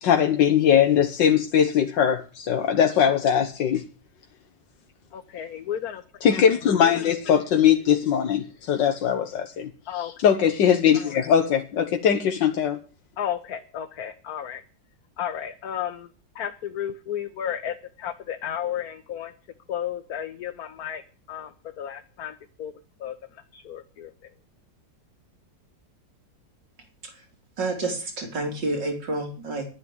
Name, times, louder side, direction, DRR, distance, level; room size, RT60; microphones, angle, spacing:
voice 1, 0.0-3.8 6.2-12.8, left 8 dB, 85° left, 1.8 m, -21 dB
voice 2, 5.1-6.0 9.9-10.1 13.2-14.6 15.2-16.1 16.3-19.3 19.7-21.0 21.3-22.7 23.0-23.1 23.5-24.1, left 9 dB, 60° left, 1.5 m, -33 dB
voice 3, 27.6-29.7, right 2 dB, 85° right, 4.4 m, -29 dB
11.0 x 9.9 x 8.8 m
omnidirectional pair, 1.9 m